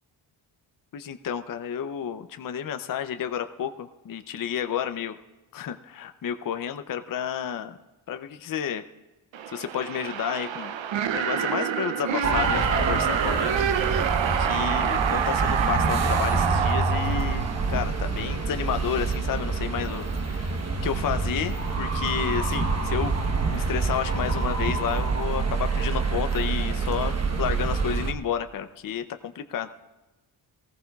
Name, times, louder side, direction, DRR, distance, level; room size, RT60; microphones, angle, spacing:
voice 1, 0.9-5.2 5.5-7.8 8.1-8.8 9.5-10.8 11.1-13.5 14.3-23.1 23.5-29.7, left 8 dB, 40° left, 9 dB, 0.6 m, -31 dB
sound 1, 9.3-18.2, right 8 dB, 65° right, 0.7 m, -27 dB
sound 2, 12.2-28.1, right 4 dB, 30° right, 1.1 m, -27 dB
17.0 x 14.5 x 2.3 m, 1.1 s
cardioid pair, 60°, 50 cm